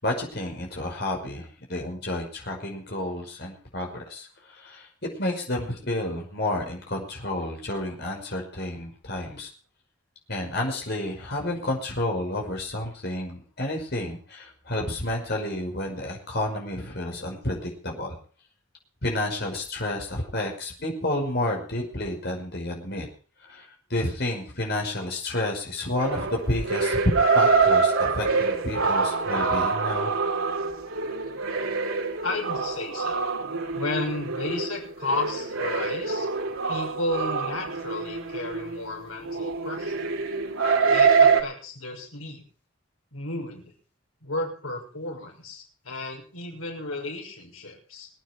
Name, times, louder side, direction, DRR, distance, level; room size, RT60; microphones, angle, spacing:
voice 1, 0.0-4.9 5.2-9.5 10.3-18.2 19.0-23.1 23.4-30.1, left 1 dB, 50° left, 1 dB, 5.7 m, -30 dB
sound 1, 26.0-41.4, right 4 dB, 85° right, 3.4 m, -25 dB
voice 2, 32.2-33.3 33.7-36.3 36.7-40.1 40.9-42.4 43.1-43.7 44.2-48.1, left 2 dB, 85° left, 2 dB, 6.5 m, -33 dB
25.0 x 9.6 x 4.6 m, 0.40 s
head